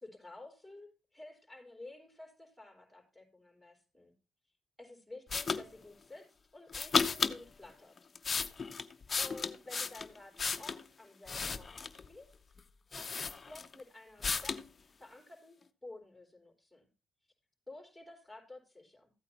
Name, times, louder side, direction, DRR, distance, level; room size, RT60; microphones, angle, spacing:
voice 1, 0.0-4.1 4.8-8.1 9.2-12.3 12.9-16.8 17.7-19.1, left 2 dB, ahead, 0 dB, 3.8 m, -52 dB
sound 1, 5.3-5.6 6.7-7.4 8.0-10.8 11.3-12.1 12.6-12.7 12.9-13.8 14.2-14.6, left 5 dB, 35° left, 0.7 m, -34 dB
14.5 x 8.7 x 2.9 m, 0.32 s
cardioid pair, 90°, 0 cm